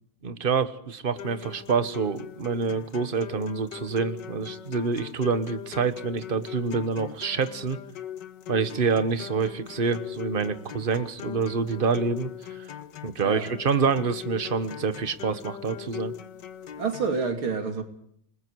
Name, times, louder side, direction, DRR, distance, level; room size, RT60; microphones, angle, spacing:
voice 1, 0.2-7.8 8.5-12.3 13.0-16.1, right 5 dB, 30° right, 1.3 m, -27 dB
sound 1, 1.2-17.2, left 10 dB, 60° left, 1.7 m, -40 dB
voice 2, 16.8-17.8, right 5 dB, 85° right, 3.6 m, -28 dB
28.5 x 20.5 x 4.8 m
omnidirectional pair, 2.2 m